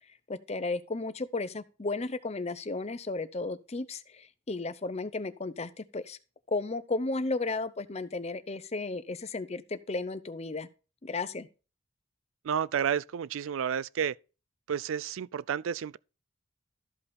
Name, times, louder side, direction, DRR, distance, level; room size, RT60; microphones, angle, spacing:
voice 1, 0.3-6.2 6.5-10.7 11.0-11.5, left 3 dB, 30° left, 0.6 m, -34 dB
voice 2, 12.4-14.1 14.7-16.0, right 8 dB, 75° right, 0.4 m, -31 dB
13.5 x 5.5 x 4.2 m
head